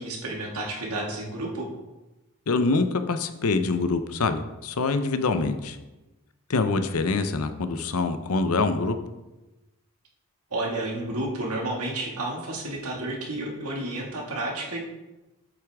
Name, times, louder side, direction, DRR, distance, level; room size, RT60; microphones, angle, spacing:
voice 1, 0.0-1.7 10.5-14.8, right 2 dB, 90° right, -1 dB, 2.0 m, -31 dB
voice 2, 2.5-5.8 6.5-9.0, left 3 dB, 80° left, 9 dB, 0.7 m, -25 dB
8.4 x 8.0 x 3.5 m, 1.1 s
head